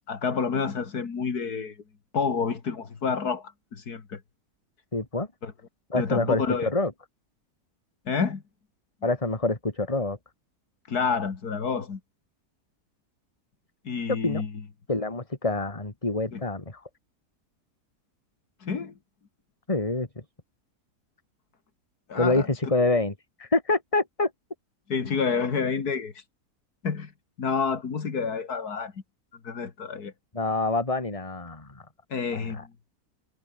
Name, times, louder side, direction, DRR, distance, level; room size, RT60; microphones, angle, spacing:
voice 1, 0.1-1.8 2.1-4.2 5.4-5.5 6.0-6.7 8.1-8.4 10.9-12.0 13.8-14.6 16.3-16.4 18.6-18.9 22.1-22.5 24.9-26.1 26.8-27.1 27.4-28.9 29.4-30.1 32.1-32.7, left 5 dB, 70° left, 2.7 m, -29 dB
voice 2, 4.9-5.3 5.9-6.9 9.0-10.2 14.1-14.4 14.9-16.8 19.7-20.1 22.1-23.1 23.4-24.3 30.3-31.9 32.3-32.6, left 2 dB, 20° left, 2.7 m, -26 dB
omnidirectional pair, 1.7 m